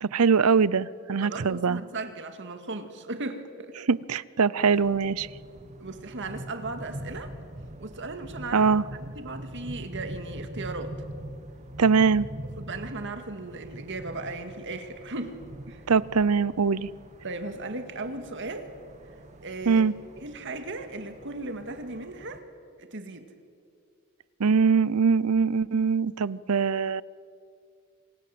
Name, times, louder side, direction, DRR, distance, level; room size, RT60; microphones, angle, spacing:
voice 1, 0.0-1.8 3.9-5.3 8.5-8.8 11.8-12.3 15.9-16.9 19.7-19.9 24.4-27.0, right 5 dB, 85° right, 20 dB, 0.7 m, -22 dB
voice 2, 1.2-3.8 5.8-7.3 7.8-8.7 9.0-11.0 12.6-15.8 17.2-18.7 19.4-19.8 20.2-22.4 22.8-23.3, right 2 dB, 60° right, 7 dB, 2.1 m, -37 dB
sound 1, 4.6-22.4, right 1 dB, 35° right, 1.8 m, -43 dB
27.5 x 25.5 x 7.8 m, 2.4 s
head